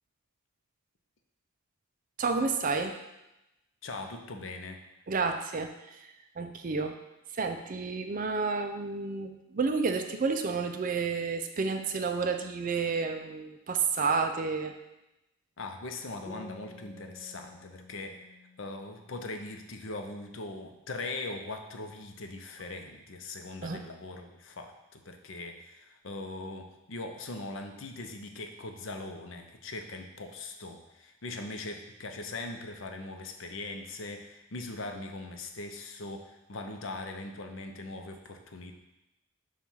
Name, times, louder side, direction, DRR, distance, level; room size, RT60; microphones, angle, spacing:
voice 1, 2.2-3.0 5.1-7.0 7.3-14.8 23.6-23.8, right 4 dB, 40° right, 6 dB, 0.4 m, -30 dB
voice 2, 3.8-4.8 15.6-18.2 18.6-38.7, left 2 dB, 60° left, 5 dB, 0.6 m, -40 dB
sound 1, 16.3-19.7, left 3 dB, 15° left, 0.6 m, -51 dB
7.2 x 2.4 x 5.5 m, 0.95 s
head